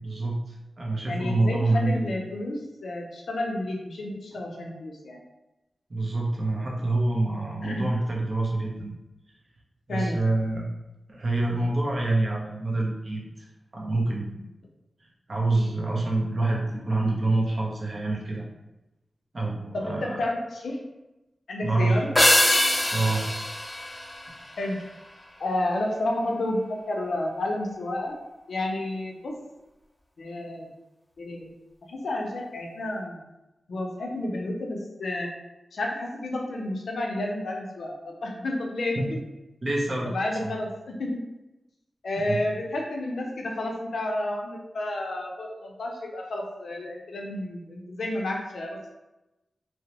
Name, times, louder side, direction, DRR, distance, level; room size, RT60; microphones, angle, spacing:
voice 1, 0.0-2.0 5.9-9.0 9.9-10.6 11.1-13.5 13.7-14.4 15.0-18.4 19.3-20.2 21.6-22.1 22.9-23.2 39.6-40.1 40.4-40.6 42.3-42.4, right 2 dB, 45° right, -2 dB, 0.6 m, -26 dB
voice 2, 1.1-5.2 7.6-7.9 9.9-10.2 19.7-20.8 21.5-22.1 24.6-24.8 25.4-28.2 28.5-29.3 30.2-30.7 31.2-31.5 31.9-33.2 33.7-35.3 35.7-39.0 40.0-41.2 42.0-48.9, left 1 dB, 85° left, 0 dB, 0.5 m, -31 dB
sound 1, 22.1-24.8, left 1 dB, 25° left, 0.4 m, -23 dB
2.8 x 2.0 x 2.9 m, 0.98 s
wide cardioid pair, 85°, 0 cm